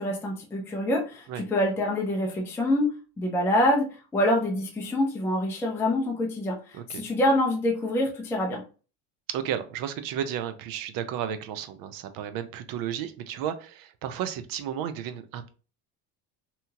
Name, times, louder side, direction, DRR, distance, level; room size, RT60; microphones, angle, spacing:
voice 1, 0.0-6.6 6.9-8.6, left 1 dB, 5° left, 0 dB, 0.4 m, -26 dB
voice 2, 6.7-7.1 9.3-15.5, right 9 dB, 55° right, 10 dB, 0.5 m, -33 dB
2.9 x 2.7 x 2.3 m, 0.35 s
supercardioid pair, 115°, 42 cm